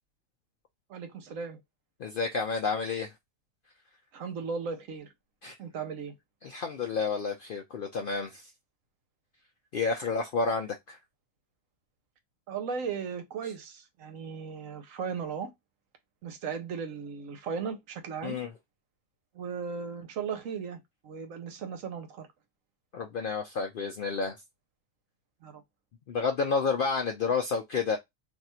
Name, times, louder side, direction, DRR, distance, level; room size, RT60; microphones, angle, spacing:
voice 1, 0.9-1.6 4.1-5.1 5.6-6.1 12.5-15.5 16.2-18.4 19.3-22.3 25.4-25.6, right 6 dB, 70° right, 1.1 m, -36 dB
voice 2, 2.0-3.1 5.4-5.5 6.4-8.5 9.7-11.0 18.2-18.5 22.9-24.4 26.1-28.0, left 4 dB, 65° left, 0.5 m, -30 dB
2.6 x 2.5 x 4.2 m
omnidirectional pair, 1.4 m